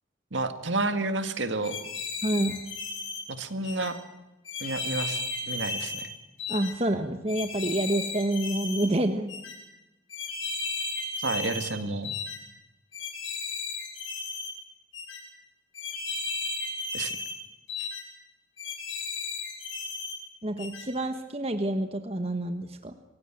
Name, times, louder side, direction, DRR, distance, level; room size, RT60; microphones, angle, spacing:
voice 1, 0.3-1.8 3.3-4.0 4.6-5.2 5.5-6.1 11.2-12.1 16.9-17.2 17.8-17.9, right 2 dB, 70° right, 8 dB, 2.1 m, -30 dB
sound 1, 1.6-3.2 3.6-3.9 4.5-6.1 6.4-6.7 7.3-8.9 9.3-9.6 10.1-11.7 12.0-12.4 12.9-14.5 14.9-15.2 15.7-17.4 17.7-18.0 18.6-20.2 20.6-20.9, left 3 dB, 80° left, 7.7 m, -34 dB
voice 2, 2.2-2.6 6.5-9.3 20.4-22.9, right 1 dB, 30° right, 7 dB, 1.2 m, -28 dB
27.0 x 16.5 x 9.2 m, 1.0 s
head